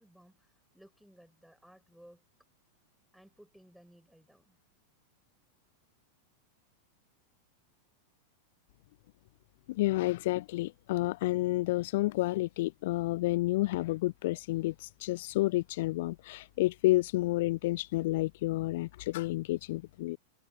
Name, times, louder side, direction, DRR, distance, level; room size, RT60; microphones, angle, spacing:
voice 1, 0.0-2.2 3.1-4.6 11.8-11.9, equal, ahead, 5.3 m, -59 dB
voice 2, 9.7-20.2, left 18 dB, 50° left, 0.3 m, -30 dB
figure-of-eight pair, 90°, 0 cm